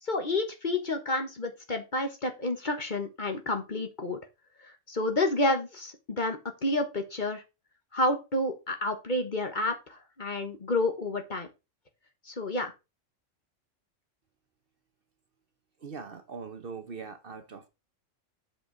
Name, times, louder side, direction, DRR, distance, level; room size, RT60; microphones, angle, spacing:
voice 1, 0.0-4.2 4.6-7.4 7.9-11.5 12.2-12.7, left 2 dB, 40° left, 1.4 m, -30 dB
voice 2, 15.8-17.7, right 5 dB, 50° right, 1.1 m, -41 dB
8.0 x 6.1 x 4.0 m
omnidirectional pair, 1.3 m